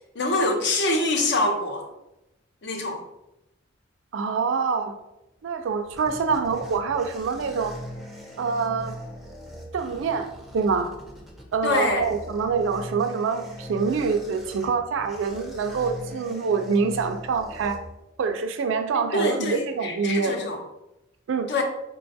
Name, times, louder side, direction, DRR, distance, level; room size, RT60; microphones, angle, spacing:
voice 1, 0.1-1.9 2.6-3.0 11.6-12.1 18.9-20.6 21.5-21.6, left 2 dB, 60° left, 3 dB, 0.5 m, -25 dB
voice 2, 4.1-4.9 5.4-7.7 8.4-9.0 9.7-10.9 11.5-17.8 18.2-20.4 21.3-21.5, right 5 dB, 75° right, 7 dB, 0.3 m, -25 dB
sound 1, 5.4-18.3, equal, ahead, 0.4 m, -41 dB
3.9 x 2.3 x 2.5 m, 0.89 s
head